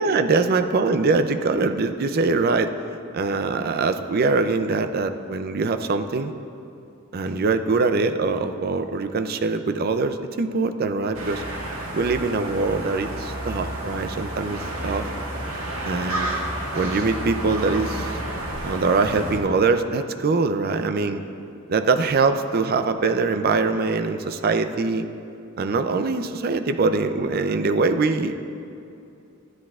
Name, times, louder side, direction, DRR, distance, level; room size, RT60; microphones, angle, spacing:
voice 1, 0.0-2.7 3.1-6.3 7.1-11.4 11.9-15.1 15.8-16.4 16.7-18.2 18.6-21.2 21.7-25.1 25.6-28.3, right 3 dB, 45° right, 8 dB, 0.4 m, -23 dB
sound 1, 11.1-19.4, right 1 dB, 75° right, 1.5 m, -30 dB
13.0 x 10.0 x 2.4 m, 2.6 s
head